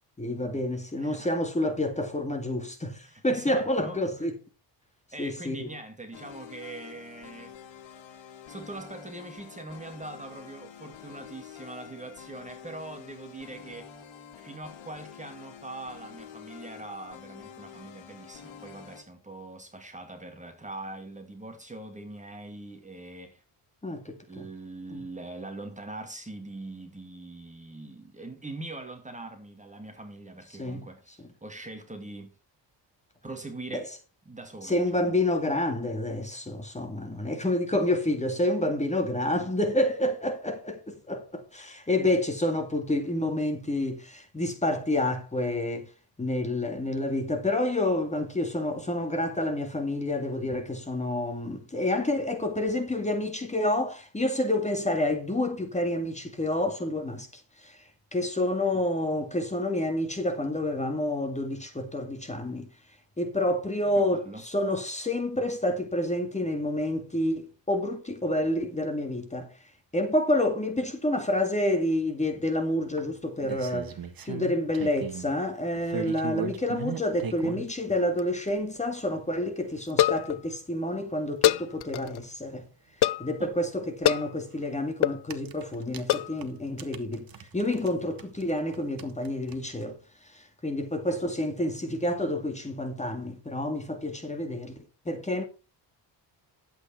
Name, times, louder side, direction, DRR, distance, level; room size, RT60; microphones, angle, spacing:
voice 1, 0.2-4.3 5.2-5.7 23.8-24.5 24.9-25.0 30.6-30.8 33.7-33.8 34.6-45.9 46.2-57.8 58.1-62.7 63.2-69.5 69.9-73.9 74.2-82.6 83.2-87.3 87.5-90.0 90.3-94.8 95.1-95.4, left 1 dB, 15° left, 2.2 m, -28 dB
voice 2, 1.0-1.4 3.0-4.3 5.1-7.5 8.5-13.9 14.4-23.4 24.3-32.3 33.2-33.9 34.3-35.1 38.1-38.2 63.9-64.4 83.4-83.5, right 2 dB, 15° right, 2.2 m, -42 dB
sound 1, 6.1-19.0, left 8 dB, 80° left, 2.5 m, -47 dB
sound 2, 73.0-75.3 75.7-77.7 78.6-78.7 79.1-79.2 79.4-79.5 79.8-79.9 81.8-81.9 82.2-82.3 84.2-84.4 85.1-87.9 88.2-89.8, right 7 dB, 50° right, 1.6 m, -38 dB
sound 3, 77.7-78.2 78.5-78.6 78.8-78.9 79.9-80.4 81.4-82.2 83.0-83.3 84.0-84.3 85.0-85.2 86.1-86.4, left 13 dB, 60° left, 0.6 m, -24 dB
11.5 x 8.4 x 4.4 m
cardioid pair, 115°, 45 cm